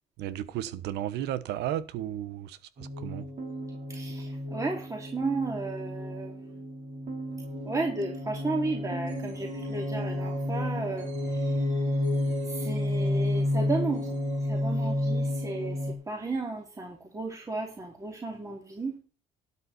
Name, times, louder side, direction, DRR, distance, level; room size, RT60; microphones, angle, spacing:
voice 1, 0.2-3.3, right 12 dB, 85° right, 1.1 m, -34 dB
sound 1, 2.8-15.9, left 1 dB, 45° right, 3.7 m, -31 dB
voice 2, 3.9-6.5 7.6-11.6 12.5-14.2 14.5-19.0, right 3 dB, 20° right, 2.7 m, -34 dB
12.0 x 8.7 x 4.2 m
cardioid pair, 110°, 17 cm